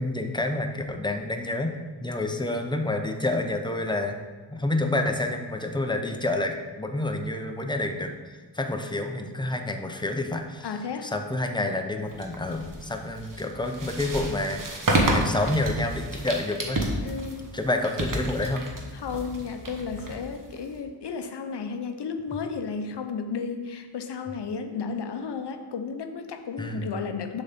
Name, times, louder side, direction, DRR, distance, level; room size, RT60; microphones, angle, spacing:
voice 1, 0.0-1.7 2.0-4.2 4.5-10.7 11.0-14.6 15.1-16.8 17.5-18.7 26.6-27.0, left 2 dB, 10° left, 4 dB, 0.6 m, -28 dB
voice 2, 10.6-11.1 17.0-17.6 18.9-27.4, left 5 dB, 70° left, 6 dB, 0.7 m, -33 dB
sound 1, 12.1-20.8, right 1 dB, 50° right, 1.1 m, -30 dB
6.9 x 4.0 x 5.8 m, 1.4 s
wide cardioid pair, 100°, 42 cm